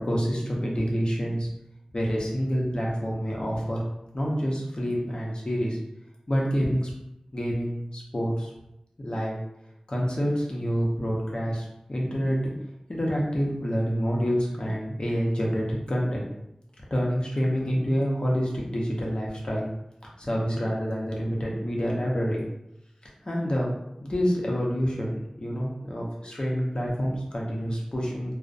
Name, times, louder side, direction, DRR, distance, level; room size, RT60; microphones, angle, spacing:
voice 1, 0.0-1.5 1.9-3.8 4.1-5.8 6.3-6.9 7.3-8.5 9.0-9.4 9.9-12.5 12.9-16.3 16.9-19.7 20.2-22.4 23.3-23.7 24.0-28.3, equal, 50° left, -3 dB, 0.7 m, -27 dB
2.4 x 2.0 x 2.4 m, 0.85 s
wide cardioid pair, 50°, 2 cm